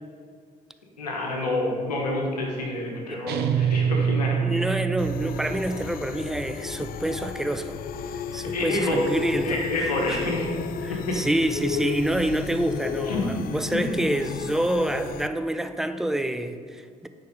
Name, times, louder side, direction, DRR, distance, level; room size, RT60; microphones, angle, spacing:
voice 1, 1.0-4.8 8.5-8.9 9.4-10.5 10.9-11.3 13.1-13.2 13.7-13.9, left 2 dB, 85° left, -1 dB, 1.3 m, -28 dB
sound 1, 3.3-5.8, right 7 dB, 55° right, 0.6 m, -25 dB
voice 2, 4.4-7.8 8.3-9.6 10.1-10.3 10.8-17.1, right 1 dB, ahead, 9 dB, 0.5 m, -27 dB
sound 2, 5.0-15.3, left 7 dB, 50° left, 0.4 m, -34 dB
9.3 x 4.7 x 5.1 m, 2.1 s
figure-of-eight pair, 50°, 20 cm